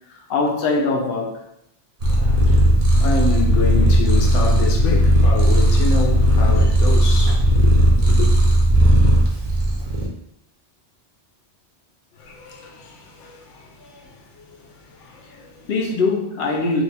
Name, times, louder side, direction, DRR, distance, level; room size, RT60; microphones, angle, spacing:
voice 1, 0.1-1.5 15.7-16.8, left 3 dB, 65° left, 0.8 m, -22 dB
voice 2, 2.0-8.3 12.2-15.7, left 4 dB, 85° left, 1.0 m, -28 dB
Purr, 2.0-10.1, equal, 40° right, 0.6 m, -16 dB
2.7 x 2.2 x 3.9 m
omnidirectional pair, 1.2 m